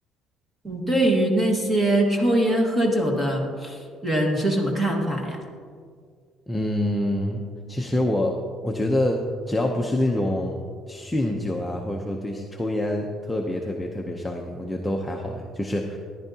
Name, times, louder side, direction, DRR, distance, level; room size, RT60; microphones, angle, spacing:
voice 1, 0.6-5.4, right 1 dB, 15° right, 0 dB, 1.6 m, -22 dB
voice 2, 6.5-7.4 7.7-10.6 10.9-16.0, left 1 dB, 5° left, 0 dB, 0.6 m, -26 dB
14.0 x 11.0 x 2.8 m, 2.1 s
cardioid pair, 155°, 0 cm